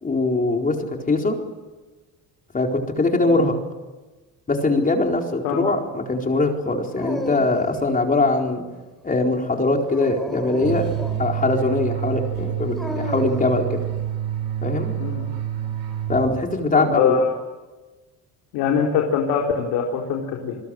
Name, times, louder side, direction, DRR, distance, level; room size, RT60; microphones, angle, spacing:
voice 1, 0.0-0.8 1.1-1.4 2.5-3.5 4.5-8.6 9.0-10.9 11.2-13.8 14.6-14.9 16.1-17.2, left 2 dB, 20° left, 2 dB, 4.4 m, -22 dB
Dog, 6.9-7.9 9.8-11.3 12.8-13.5, left 1 dB, ahead, 4.4 m, -33 dB
sound 1, 10.6-16.7, right 11 dB, 85° right, 7.2 m, -28 dB
voice 2, 15.0-15.3 16.7-17.3 18.5-20.6, left 6 dB, 90° left, 0 dB, 4.4 m, -23 dB
29.5 x 21.5 x 7.9 m, 1.2 s
cardioid pair, 125°, 36 cm